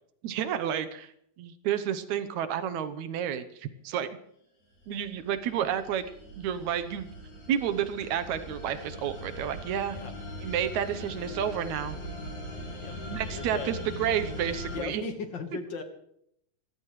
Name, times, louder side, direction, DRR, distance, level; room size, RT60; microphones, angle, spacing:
voice 1, 0.2-1.1 1.4-4.1 4.9-6.0 6.4-7.1 7.5-10.0 10.4-12.0 13.1-15.0, right 9 dB, 75° right, 11 dB, 2.2 m, -30 dB
sound 1, 4.7-14.8, left 1 dB, 70° left, 6.5 m, -40 dB
voice 2, 12.8-13.8 14.7-15.8, left 4 dB, 45° left, 6 dB, 1.8 m, -37 dB
26.5 x 15.0 x 3.2 m, 0.71 s
omnidirectional pair, 3.4 m